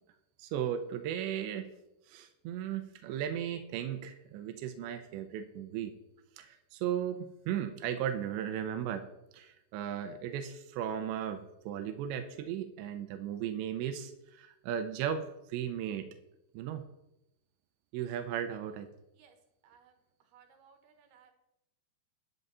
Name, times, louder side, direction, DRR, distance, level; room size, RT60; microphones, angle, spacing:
voice 1, 0.4-1.7 2.1-5.9 6.4-9.1 9.3-16.1 16.5-16.8 17.9-18.9, right 9 dB, 90° right, 9 dB, 3.0 m, -36 dB
voice 2, 19.6-21.3, right 7 dB, 70° right, 6 dB, 3.1 m, -62 dB
13.5 x 11.0 x 4.1 m, 0.86 s
omnidirectional pair, 5.2 m